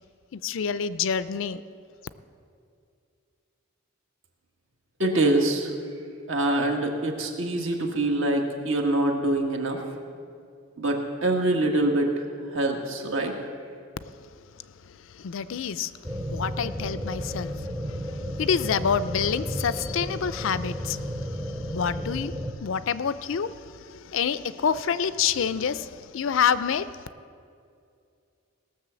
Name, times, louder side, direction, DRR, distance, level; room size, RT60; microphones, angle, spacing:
voice 1, 0.3-1.6 14.0-14.1 14.8-27.0, left 7 dB, 65° left, 15 dB, 0.4 m, -28 dB
voice 2, 5.0-5.7 6.3-9.8 10.8-13.3, right 2 dB, 65° right, 2 dB, 1.6 m, -25 dB
sound 1, 16.0-22.5, equal, 15° right, 0.7 m, -33 dB
18.0 x 6.7 x 6.9 m, 2.4 s
head